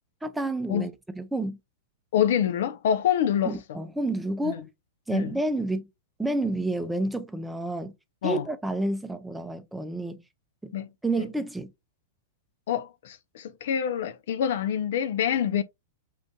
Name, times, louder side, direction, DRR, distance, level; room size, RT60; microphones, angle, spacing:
voice 1, 0.2-1.6 3.4-4.7 5.1-5.9 6.2-7.9 8.2-10.2 10.6-10.7 11.0-11.7, right 2 dB, 5° right, 0.6 m, -29 dB
voice 2, 2.1-3.6 4.4-4.5 5.1-5.3 8.2-8.5 10.7-10.9 12.7-15.6, left 9 dB, 65° left, 0.4 m, -26 dB
4.6 x 2.5 x 2.2 m
hypercardioid pair, 105°, 0 cm